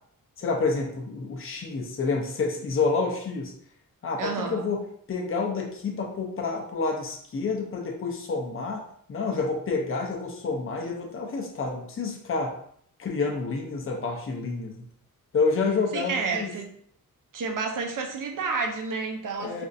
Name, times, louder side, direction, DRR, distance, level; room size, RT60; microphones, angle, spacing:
voice 1, 0.4-3.5 4.0-8.8 9.1-12.5 13.0-14.8 15.3-16.5 19.4-19.7, left 4 dB, 40° left, 1 dB, 0.6 m, -28 dB
voice 2, 4.2-4.6 15.9-16.7 17.3-19.7, right 4 dB, 65° right, 4 dB, 0.6 m, -30 dB
4.1 x 2.5 x 2.6 m, 0.65 s
wide cardioid pair, 155°, 34 cm